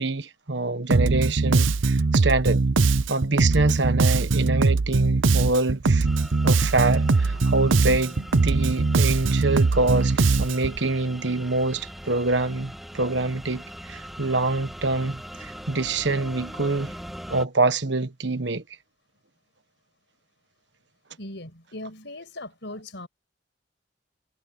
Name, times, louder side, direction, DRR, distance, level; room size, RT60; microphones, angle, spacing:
voice 1, 0.0-2.6 3.1-6.1 6.4-16.9 17.3-18.6, right 2 dB, 60° right, 1.3 m, -25 dB
Bass guitar, 0.9-10.8, right 3 dB, 80° right, 0.7 m, -21 dB
sound 1, 6.0-17.5, equal, ahead, 1.6 m, -41 dB
voice 2, 21.2-23.1, left 1 dB, 60° left, 5.9 m, -39 dB
head